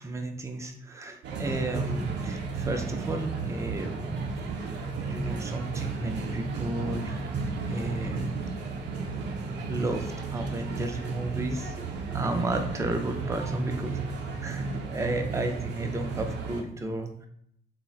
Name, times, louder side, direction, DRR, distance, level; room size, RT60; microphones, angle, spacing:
voice 1, 0.0-4.3 5.0-7.3 7.7-8.4 9.7-17.3, right 2 dB, 15° right, 5 dB, 0.4 m, -33 dB
sound 1, 1.2-16.6, right 4 dB, 85° right, 0.5 m, -33 dB
3.7 x 2.1 x 2.3 m, 0.70 s
cardioid pair, 115°, 18 cm